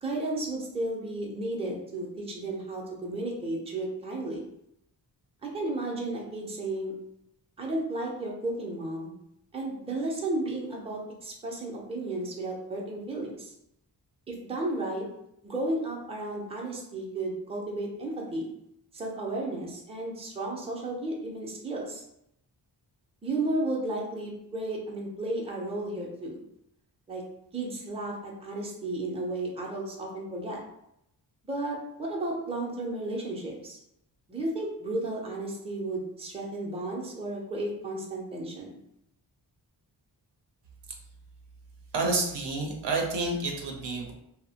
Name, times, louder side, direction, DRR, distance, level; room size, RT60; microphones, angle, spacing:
voice 1, 0.0-4.5 5.4-6.9 7.6-9.1 9.5-13.5 14.3-15.1 15.4-18.5 18.9-22.0 23.2-26.4 27.1-27.2 27.5-30.6 31.4-33.8 34.3-38.7, right 2 dB, 15° right, -2 dB, 0.5 m, -33 dB
voice 2, 41.9-44.1, right 3 dB, 80° right, 2 dB, 0.6 m, -29 dB
2.7 x 2.0 x 2.7 m, 0.78 s
wide cardioid pair, 125°, 41 cm